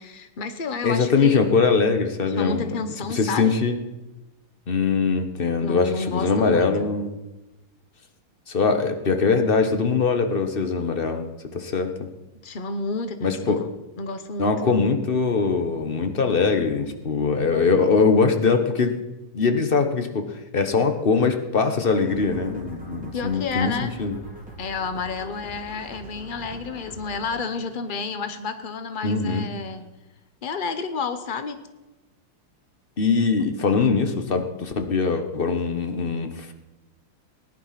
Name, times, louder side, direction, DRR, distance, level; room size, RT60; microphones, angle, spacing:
voice 1, 0.0-1.6 2.3-3.5 5.6-6.9 12.4-13.7 14.0-14.8 23.1-23.9 24.6-29.8 30.4-31.6, left 4 dB, 85° left, 9 dB, 0.4 m, -30 dB
voice 2, 0.8-2.7 3.1-3.8 4.7-7.1 8.5-12.1 13.2-13.6 14.4-18.9 19.3-24.2 29.0-29.5 33.0-36.5, left 4 dB, 35° left, 7 dB, 1.0 m, -22 dB
sound 1, 21.8-28.6, equal, 5° right, 3.6 m, -43 dB
19.0 x 10.5 x 5.9 m, 1.1 s
omnidirectional pair, 2.3 m